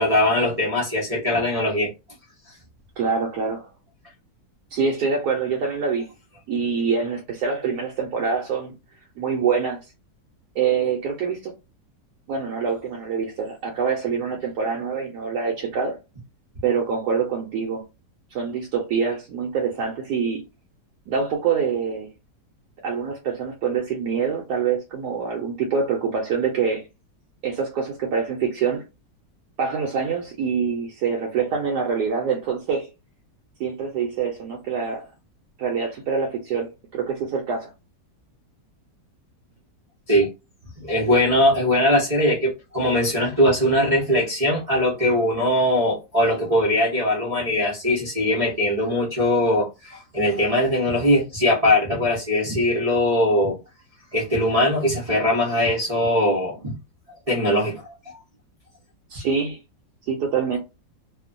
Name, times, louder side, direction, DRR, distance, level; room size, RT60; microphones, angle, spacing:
voice 1, 0.0-1.9 40.1-40.3 40.8-53.6 54.1-56.7 57.3-57.9, left 1 dB, 40° right, 0.5 m, -21 dB
voice 2, 3.0-3.7 4.7-6.1 6.5-8.7 9.2-9.8 10.5-11.5 12.3-16.0 16.6-17.8 18.3-20.4 21.1-22.1 22.8-26.8 27.4-28.8 29.6-32.9 33.6-35.1 35.6-37.7 59.1-59.6 60.1-60.6, right 6 dB, 70° right, 1.1 m, -25 dB
2.9 x 2.1 x 2.5 m
omnidirectional pair, 1.9 m